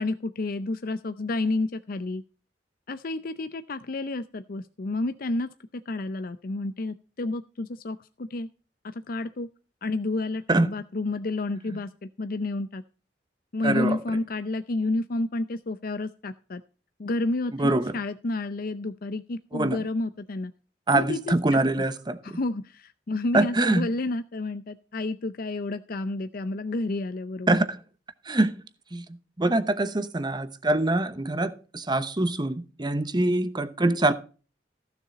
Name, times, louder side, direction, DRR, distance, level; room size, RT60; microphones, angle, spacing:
voice 1, 0.0-2.2 2.9-8.5 8.8-9.5 9.8-12.8 13.5-16.6 17.0-20.5 20.9-21.6 22.2-27.5, left 2 dB, 55° left, 0.6 m, -30 dB
voice 2, 13.6-14.0 17.5-17.9 19.5-19.8 20.9-22.4 23.3-23.9 27.5-27.8 28.2-28.6 28.9-29.0 29.4-34.1, right 2 dB, 25° right, 0.9 m, -24 dB
15.0 x 6.9 x 4.1 m
head